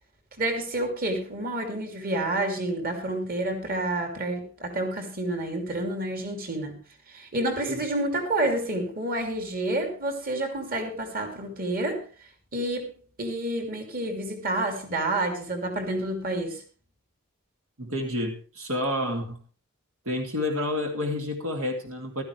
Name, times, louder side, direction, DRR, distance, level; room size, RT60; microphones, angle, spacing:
voice 1, 0.4-6.8 7.1-12.0 12.5-12.9 13.2-16.6, right 1 dB, 45° right, 2.9 m, -29 dB
voice 2, 17.8-19.4 20.1-22.2, left 1 dB, 80° right, 2.6 m, -29 dB
15.5 x 13.0 x 3.3 m
head